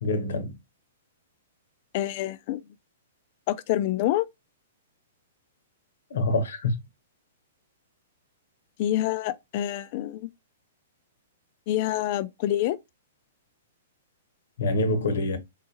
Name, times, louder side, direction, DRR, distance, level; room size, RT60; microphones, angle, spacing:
voice 1, 0.0-0.5 6.1-6.8 14.6-15.4, left 2 dB, 70° left, 0.7 m, -25 dB
voice 2, 1.9-2.6 3.5-4.3 8.8-10.3 11.7-12.8, left 13 dB, 50° left, 0.3 m, -27 dB
3.6 x 2.4 x 2.7 m
hypercardioid pair, 120°, 0 cm